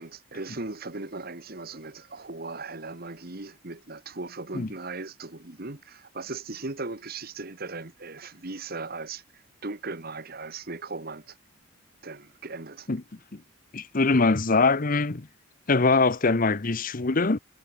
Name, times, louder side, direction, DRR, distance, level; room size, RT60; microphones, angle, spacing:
voice 1, 0.0-11.4 12.0-12.9, right 3 dB, 50° right, 1.7 m, -38 dB
voice 2, 13.7-15.3 15.7-17.4, left 3 dB, 45° left, 0.9 m, -23 dB
head